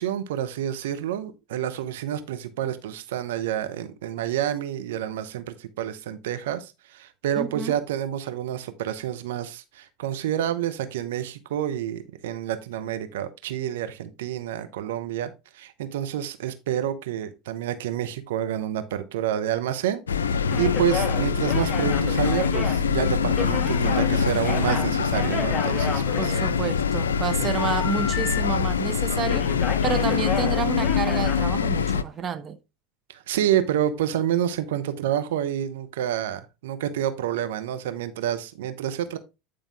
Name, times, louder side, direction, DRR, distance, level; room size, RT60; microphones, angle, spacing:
voice 1, 0.0-26.3 27.4-27.5 33.1-39.2, right 11 dB, 75° right, 0.9 m, -28 dB
voice 2, 7.4-7.8 26.2-29.5 29.8-32.6, right 6 dB, 35° right, 0.9 m, -30 dB
sound 1, 20.1-32.0, left 6 dB, 85° left, 0.5 m, -24 dB
sound 2, 20.5-24.1 24.4-26.9 27.6-28.4 28.7-28.9 29.2-31.4, left 5 dB, 30° left, 2.1 m, -32 dB
sound 3, 23.3-32.2, left 1 dB, 10° left, 2.8 m, -51 dB
9.6 x 5.1 x 3.5 m
hypercardioid pair, 80°, 0 cm